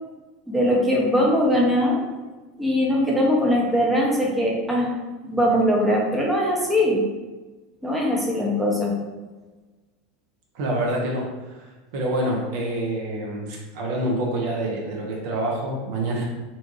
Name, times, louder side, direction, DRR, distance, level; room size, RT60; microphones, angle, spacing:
voice 1, 0.5-2.0 2.6-4.9 5.2-7.0 7.8-8.9, equal, 10° right, -3 dB, 0.6 m, -21 dB
voice 2, 10.5-16.2, right 1 dB, 55° right, -1 dB, 0.5 m, -27 dB
2.6 x 2.2 x 2.6 m, 1.2 s
figure-of-eight pair, 80°, 0 cm